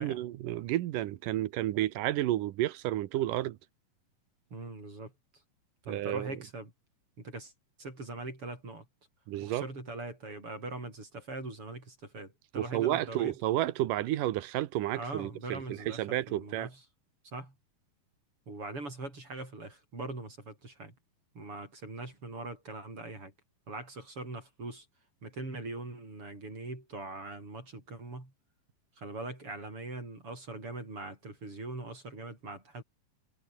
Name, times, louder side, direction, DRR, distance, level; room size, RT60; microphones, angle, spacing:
voice 1, 0.0-3.6 5.9-6.3 9.3-9.6 12.6-16.7, right 14 dB, 75° right, 2.5 m, -31 dB
voice 2, 4.5-5.1 5.9-6.7 7.2-7.5 7.8-8.9 9.4-13.4 14.9-16.8 17.2-17.5 18.5-21.0 21.3-23.3 23.7-24.9 25.2-28.3 29.0-32.8, right 2 dB, 40° right, 7.9 m, -41 dB
omnidirectional pair, 4.0 m